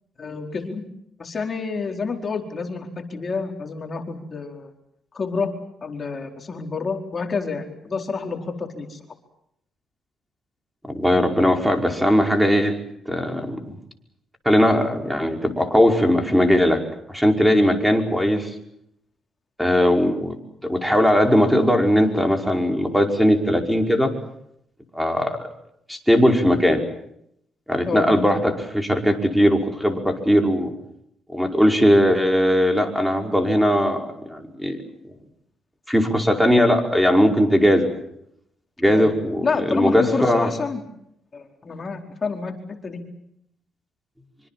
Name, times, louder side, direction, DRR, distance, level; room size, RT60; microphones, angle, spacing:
voice 1, 0.2-0.8 1.2-4.7 5.1-5.5 5.8-9.0 27.8-28.1 38.8-39.1 39.4-40.8 41.3-42.5 42.8-43.0, left 4 dB, 40° left, 4 dB, 4.4 m, -28 dB
voice 2, 10.9-12.8 13.1-13.8 14.5-16.8 17.1-18.5 19.6-20.3 20.6-24.1 24.9-25.4 25.9-26.8 27.7-30.7 31.3-34.8 35.9-37.9 38.8-40.5, equal, ahead, 4 dB, 5.2 m, -19 dB
25.5 x 25.0 x 7.5 m, 0.75 s
cardioid pair, 90°, 0 cm